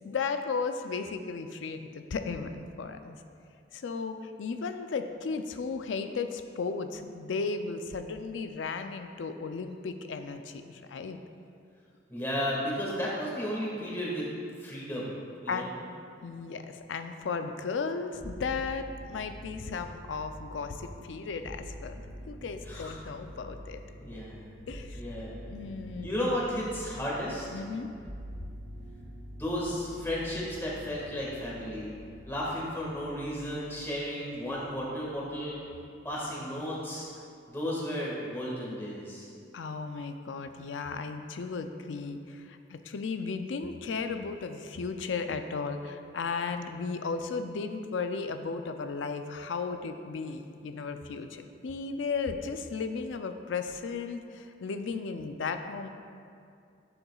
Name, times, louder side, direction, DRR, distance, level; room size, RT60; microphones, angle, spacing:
voice 1, 0.0-3.2 3.7-11.2 15.5-15.7 16.2-23.8 24.7-25.0 25.5-26.3 27.5-27.9 39.5-55.9, left 4 dB, 85° left, 7 dB, 0.4 m, -35 dB
voice 2, 12.1-14.3 14.6-15.1 15.4-15.7 22.6-23.0 23.9-24.5 24.9-25.3 26.0-27.5 29.3-31.9 32.2-35.6 36.0-37.1 37.5-39.3, equal, 15° left, -5 dB, 1.7 m, -33 dB
sound 1, 18.2-35.6 36.0-36.7, equal, 25° right, 0.8 m, -46 dB
11.5 x 7.0 x 2.4 m, 2.4 s
head